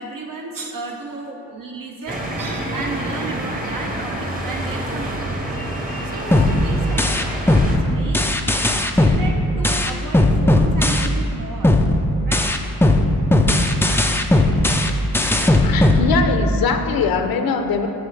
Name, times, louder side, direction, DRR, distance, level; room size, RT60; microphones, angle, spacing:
voice 1, 0.0-5.7 6.0-8.3 8.9-11.7 12.2-12.5, right 3 dB, 60° right, 0 dB, 0.9 m, -33 dB
sound 1, 2.1-7.8, right 1 dB, 25° right, 1.0 m, -27 dB
sound 2, 6.3-11.3 11.6-16.7, left 1 dB, 5° left, 0.3 m, -17 dB
voice 2, 15.6-17.9, left 5 dB, 70° left, 6 dB, 0.7 m, -21 dB
14.0 x 4.7 x 3.3 m, 2.6 s
wide cardioid pair, 120°, 36 cm